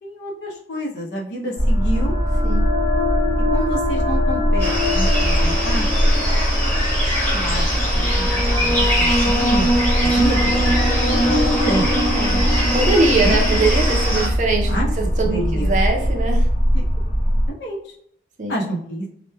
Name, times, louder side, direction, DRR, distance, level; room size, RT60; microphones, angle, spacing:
voice 1, 0.0-2.2 3.5-5.9 7.3-8.3 8.6-10.9 11.2-11.9 13.2-13.4 14.7-14.9 15.2-15.7 16.7-16.8 17.5-17.8 18.5-19.1, right 1 dB, 70° left, -1 dB, 0.6 m, -28 dB
sound 1, 1.6-17.5, equal, 45° left, 1.4 m, -21 dB
sound 2, 1.6-15.2, left 1 dB, 30° left, 0.8 m, -25 dB
sound 3, 4.6-14.3, equal, 10° left, 1.2 m, -24 dB
voice 2, 12.1-12.5 12.7-16.5 18.4-18.7, right 3 dB, 40° right, 2 dB, 0.4 m, -22 dB
2.9 x 2.1 x 2.2 m, 0.68 s
head